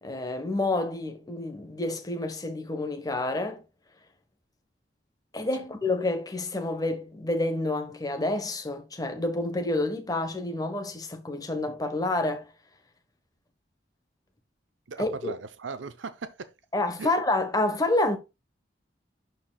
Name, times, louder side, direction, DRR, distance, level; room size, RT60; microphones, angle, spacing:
voice 1, 0.0-3.6 5.3-12.4 15.0-15.3 16.7-18.2, left 2 dB, 20° left, 1.1 m, -28 dB
voice 2, 14.9-16.5 17.0-17.1, right 4 dB, 85° right, 0.7 m, -38 dB
11.5 x 4.6 x 2.3 m
head